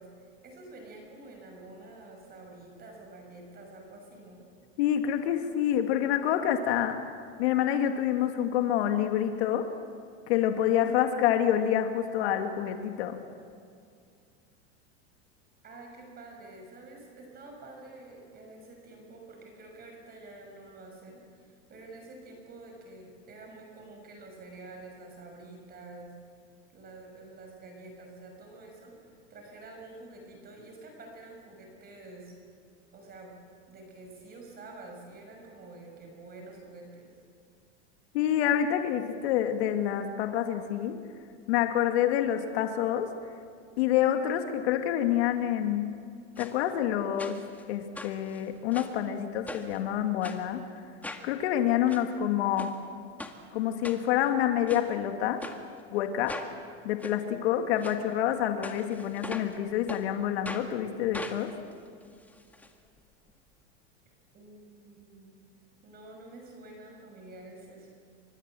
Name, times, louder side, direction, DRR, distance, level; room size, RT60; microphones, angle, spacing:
voice 1, 0.0-4.5 15.6-26.1 26.7-32.4 32.9-33.4 33.7-37.1 64.3-65.3 65.8-67.9, right 2 dB, 25° right, 2 dB, 5.9 m, -48 dB
voice 2, 4.8-7.0 7.4-9.7 10.3-13.2 38.1-41.0 41.5-43.1 43.8-45.9 46.4-47.4 47.7-50.6 51.2-52.7 53.5-55.4 55.9-56.4 56.8-61.5, left 10 dB, 70° left, 5 dB, 2.4 m, -27 dB
sound 1, 46.4-46.5 47.2-47.6 47.9-49.0 49.5-49.8 50.2-50.4 51.0-51.3 51.7-52.0 52.6-52.7 53.2-53.4 53.8-54.3 54.7-54.9 55.4-55.6 56.3-56.5 57.0-57.1 57.8-58.0 58.6-59.6 59.9-60.0 60.4-60.7 61.1-62.7 63.0-63.1 63.3-63.4, left 2 dB, 5° left, 2.0 m, -41 dB
29.0 x 25.5 x 7.7 m, 2.3 s
supercardioid pair, 140°, 34 cm